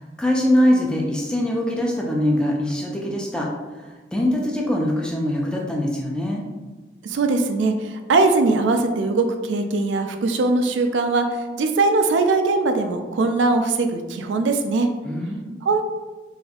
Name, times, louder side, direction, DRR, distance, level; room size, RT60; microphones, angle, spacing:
voice 1, 0.2-6.4 15.0-15.6, left 1 dB, 5° left, -2 dB, 0.4 m, -23 dB
voice 2, 7.0-14.9 15.6-15.8, right 3 dB, 80° right, 6 dB, 0.3 m, -21 dB
4.1 x 2.5 x 2.3 m, 1.3 s
head